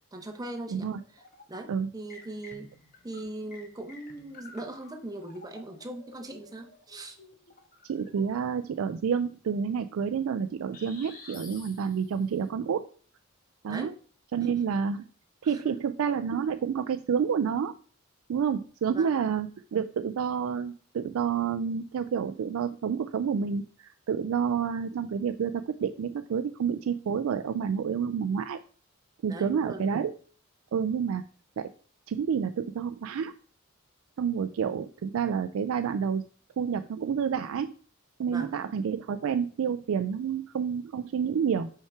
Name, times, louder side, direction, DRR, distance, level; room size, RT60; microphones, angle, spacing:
voice 1, 0.1-1.2 1.5-2.7 3.0-7.2 13.7-13.9 14.3-14.5 15.4-15.8 18.9-19.1 29.3-29.9 38.3-38.6, right 2 dB, 15° right, 4 dB, 0.8 m, -40 dB
sound 1, 0.9-1.7 2.1-8.7 10.7-12.3, left 3 dB, 40° left, 1.3 m, -51 dB
voice 2, 7.9-12.8 13.6-13.9 14.3-15.1 15.4-17.7 18.3-28.6 29.2-30.1 30.7-31.2 31.6-31.7 32.1-33.3 34.2-36.3 36.6-37.7 38.2-41.7, right 7 dB, 70° right, 8 dB, 0.3 m, -29 dB
5.5 x 4.7 x 4.6 m, 0.43 s
head